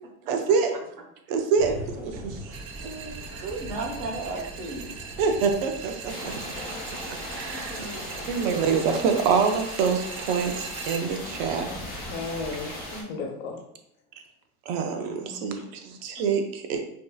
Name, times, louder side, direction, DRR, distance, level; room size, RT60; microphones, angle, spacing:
voice 1, 0.3-0.7 1.3-1.7 2.0-2.4 3.4-3.6 5.2-6.4 7.3-7.7 8.3-11.7 14.7-16.8, right 5 dB, 50° right, 5 dB, 0.6 m, -25 dB
sound 1, 1.6-13.0, equal, 5° right, 0.8 m, -43 dB
voice 2, 1.7-4.9 7.7-8.6, right 2 dB, 65° right, 1 dB, 1.2 m, -37 dB
sound 2, 2.5-11.0, right 6 dB, 90° right, 0.8 m, -41 dB
sound 3, 6.1-13.0, left 1 dB, 20° left, 1.2 m, -38 dB
voice 3, 11.7-13.6 15.1-15.6, left 4 dB, 75° left, 1 dB, 1.1 m, -36 dB
5.1 x 2.7 x 2.3 m, 0.75 s
supercardioid pair, 140°, 41 cm